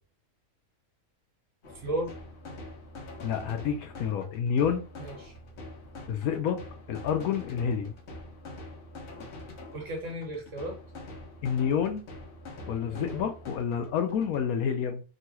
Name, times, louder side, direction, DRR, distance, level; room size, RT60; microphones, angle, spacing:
sound 1, 1.6-14.4, left 2 dB, 55° left, 1.0 m, -45 dB
voice 1, 1.7-2.1 5.0-5.3 9.7-10.8 12.9-13.3, right 1 dB, 60° right, 1.2 m, -35 dB
voice 2, 3.2-4.9 6.1-6.6 6.9-7.9 11.4-12.0 12.7-15.0, left 7 dB, 85° left, 1.1 m, -28 dB
3.0 x 2.4 x 2.9 m
omnidirectional pair, 1.5 m